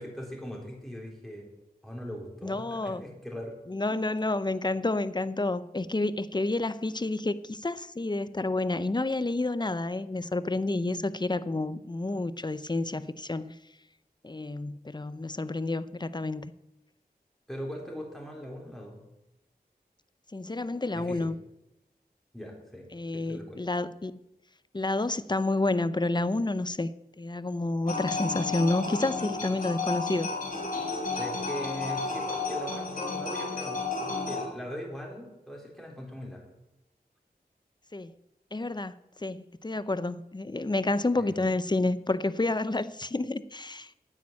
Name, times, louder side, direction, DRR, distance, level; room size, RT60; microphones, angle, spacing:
voice 1, 0.0-1.5 1.8-3.5 3.9-4.0 17.5-19.0 20.9-21.3 22.3-22.9 23.1-23.6 31.1-36.4 41.2-41.4, equal, ahead, -2 dB, 4.0 m, -40 dB
voice 2, 2.4-3.1 3.7-13.5 14.2-16.5 20.3-21.3 22.9-24.1 24.7-26.9 27.2-30.3 37.9-38.1 38.5-38.9 39.2-43.9, left 2 dB, 25° left, 14 dB, 0.7 m, -29 dB
sound 1, 27.9-34.5, left 3 dB, 60° left, 3.8 m, -32 dB
9.5 x 9.2 x 8.7 m, 0.92 s
wide cardioid pair, 50°, 16 cm